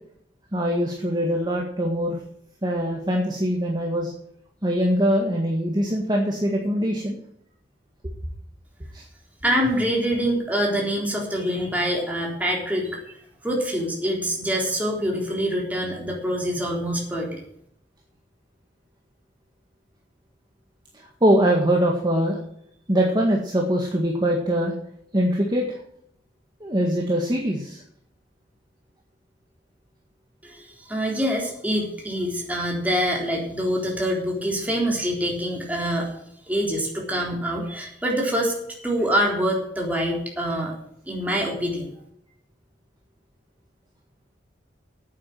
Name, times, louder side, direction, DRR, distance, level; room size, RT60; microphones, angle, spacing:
voice 1, 0.5-2.2 2.6-4.1 4.6-7.2 8.9-9.0 20.9-22.4 22.9-24.7 25.1-25.8 26.6-27.8, equal, 25° right, -1 dB, 1.8 m, -23 dB
voice 2, 9.4-13.0 13.4-17.4 30.4-30.6 30.9-36.1 36.5-38.5 38.8-40.7 41.1-41.9, equal, 10° right, -2 dB, 3.8 m, -25 dB
9.4 x 8.8 x 7.8 m, 0.70 s
head